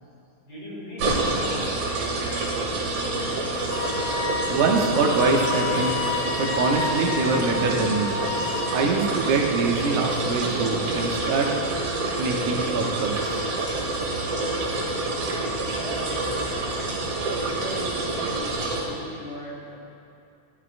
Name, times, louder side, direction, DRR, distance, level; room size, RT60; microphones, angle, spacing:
voice 1, 0.4-1.7 15.8-16.7 17.1-19.8, equal, 40° left, -7 dB, 2.9 m, -38 dB
sound 1, 1.0-18.8, right 2 dB, 60° right, 2.3 m, -27 dB
Wind instrument woodwind instrument, 3.7-8.8, left 5 dB, 90° left, 2.2 m, -31 dB
voice 2, 4.5-6.0 6.4-8.2 8.7-11.5 12.2-13.4, right 4 dB, 80° right, 0 dB, 2.4 m, -24 dB
13.5 x 11.5 x 2.5 m, 2.5 s
omnidirectional pair, 3.5 m